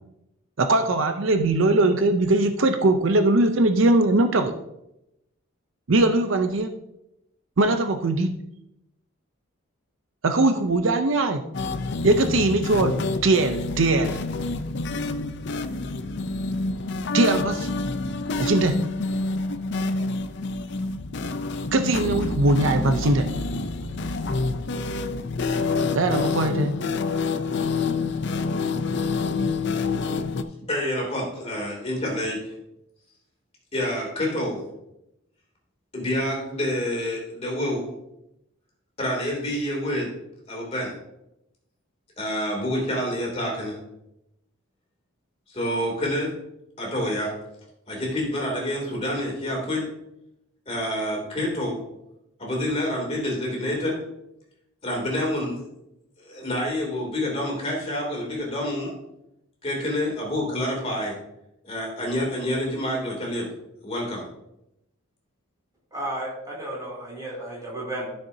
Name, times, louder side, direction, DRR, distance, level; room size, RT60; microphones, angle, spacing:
voice 1, 0.6-4.5 5.9-6.7 7.6-8.4 10.2-11.4 12.0-13.0 13.2-14.2 17.1-17.7 18.4-18.8 21.7-23.3 25.9-26.8, right 2 dB, 65° right, 8 dB, 0.6 m, -21 dB
sound 1, 11.5-30.4, left 3 dB, 55° left, 0.5 m, -27 dB
voice 2, 30.7-32.4 33.7-34.6 35.9-37.9 39.0-40.1 40.5-40.9 42.2-43.7 45.5-46.3 46.8-47.3 47.9-49.8 50.7-51.8 52.4-54.0 54.8-55.6 56.2-58.9 59.6-61.1 61.6-63.5 63.8-64.2, left 1 dB, 30° left, -2 dB, 2.7 m, -27 dB
voice 3, 65.9-68.1, right 1 dB, 15° right, -5 dB, 3.2 m, -33 dB
13.0 x 6.6 x 2.7 m, 0.85 s
head